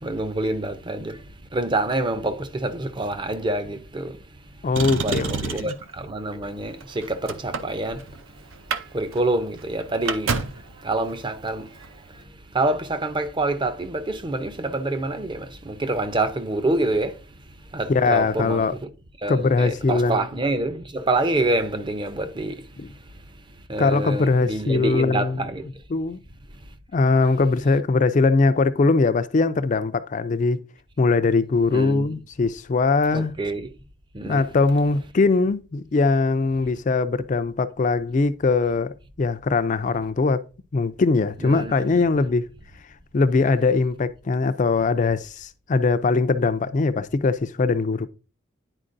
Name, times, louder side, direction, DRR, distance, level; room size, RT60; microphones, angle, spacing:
voice 1, 0.0-1.2 1.5-4.2 4.9-8.1 8.9-10.4 10.8-11.7 12.5-17.2 17.7-18.9 19.2-22.6 23.7-25.7 31.7-32.2 33.1-33.7 34.1-34.5 41.4-41.8 42.1-42.3, right 2 dB, 25° right, 0.6 m, -26 dB
voice 2, 4.6-5.7 17.9-18.7 19.3-20.3 23.8-25.4 25.9-26.2 26.9-30.6 31.0-33.3 34.3-40.4 40.7-42.5 43.1-48.1, left 3 dB, 40° left, 0.4 m, -21 dB
Motor vehicle (road), 4.7-5.9 6.7-8.2 8.5-8.8 9.1-9.2 9.6-10.7 11.7-11.9, right 5 dB, 70° right, 0.6 m, -28 dB
9.8 x 4.5 x 2.6 m
head